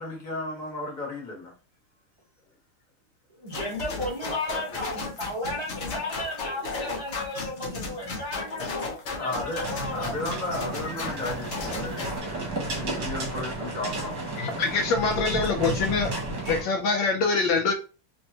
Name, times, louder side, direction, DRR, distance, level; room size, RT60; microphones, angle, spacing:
voice 1, 0.0-1.5 9.2-9.7 9.9-14.6, left 2 dB, 25° left, -2 dB, 1.1 m, -34 dB
voice 2, 3.4-10.2, left 1 dB, 30° right, -4 dB, 0.5 m, -34 dB
sound 1, 3.5-12.2, left 4 dB, 55° left, 0.7 m, -35 dB
sound 2, 9.6-16.6, right 2 dB, 50° right, 1.4 m, -33 dB
voice 3, 14.4-16.2 16.4-17.7, left 4 dB, 75° left, 4 dB, 1.2 m, -24 dB
3.5 x 3.2 x 2.7 m, 0.33 s
omnidirectional pair, 2.3 m